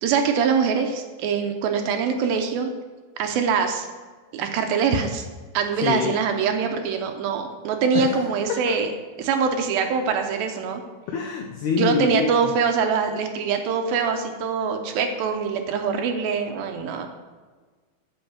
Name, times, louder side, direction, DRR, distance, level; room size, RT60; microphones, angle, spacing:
voice 1, 0.0-2.7 3.2-3.9 4.3-5.2 5.5-8.9 9.2-10.8 11.8-17.1, right 6 dB, 80° right, 5 dB, 2.5 m, -23 dB
voice 2, 5.8-6.1 7.9-8.1 11.1-12.2, left 6 dB, 85° left, 1 dB, 1.7 m, -25 dB
8.7 x 5.4 x 7.3 m, 1.4 s
omnidirectional pair, 4.5 m